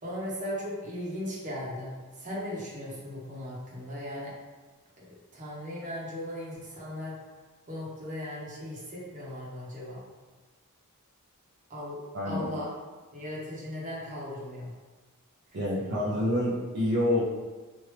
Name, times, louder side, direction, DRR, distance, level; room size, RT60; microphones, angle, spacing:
voice 1, 0.0-1.9 2.2-4.3 5.0-5.1 5.3-7.2 7.7-10.0 11.7-12.7 13.1-14.7 15.8-16.0, left 1 dB, 35° right, -6 dB, 0.9 m, -37 dB
voice 2, 12.1-12.5 15.5-17.2, left 1 dB, 50° right, -8 dB, 0.5 m, -27 dB
3.1 x 2.5 x 3.2 m, 1.3 s
head